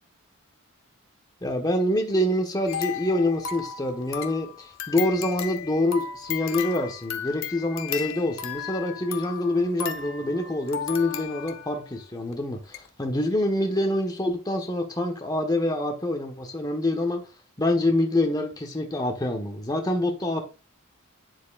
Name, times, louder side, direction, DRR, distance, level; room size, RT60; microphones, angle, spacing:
voice 1, 1.4-17.2 17.6-20.4, left 1 dB, 20° left, 1.3 m, -26 dB
sound 1, 2.7-11.8 12.3-12.4 12.7-12.9, left 8 dB, 60° left, 0.9 m, -35 dB
9.4 x 7.3 x 2.5 m
head